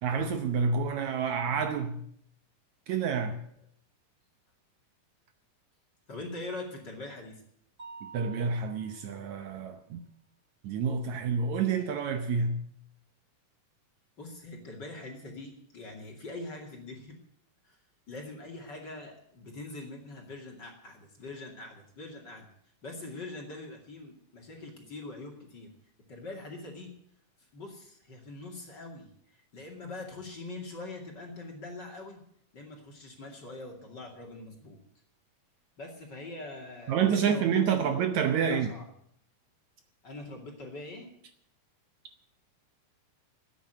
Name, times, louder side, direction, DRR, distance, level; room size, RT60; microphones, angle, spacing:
voice 1, 0.0-2.0 2.9-3.4 8.0-10.0 10.6-12.6 36.9-38.7, right 6 dB, 70° right, 2.0 m, -28 dB
voice 2, 6.1-7.4 14.2-17.1 17.6-17.8 18.1-22.5 22.8-25.7 26.1-27.0 27.5-32.2 32.5-34.8 35.8-38.0 38.4-38.9 40.0-41.1, left 2 dB, 35° left, 2.7 m, -43 dB
Mallet percussion, 7.8-9.6, right 5 dB, 20° right, 1.6 m, -49 dB
13.0 x 9.4 x 9.1 m
omnidirectional pair, 3.8 m